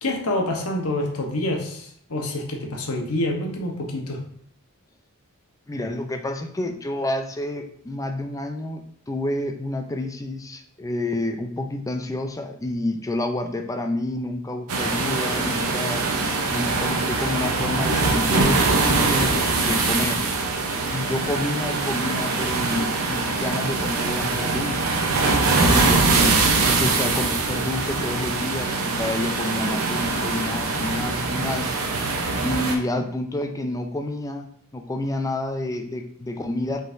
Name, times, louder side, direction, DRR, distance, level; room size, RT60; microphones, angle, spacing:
voice 1, 0.0-4.2, left 1 dB, 80° left, 2 dB, 1.0 m, -27 dB
voice 2, 5.7-16.1 16.5-20.2 20.9-24.8 25.6-31.8 32.4-36.8, left 1 dB, 15° left, 6 dB, 0.4 m, -29 dB
sound 1, 14.7-32.7, right 3 dB, 75° right, 0.8 m, -23 dB
5.3 x 3.8 x 2.6 m, 0.63 s
head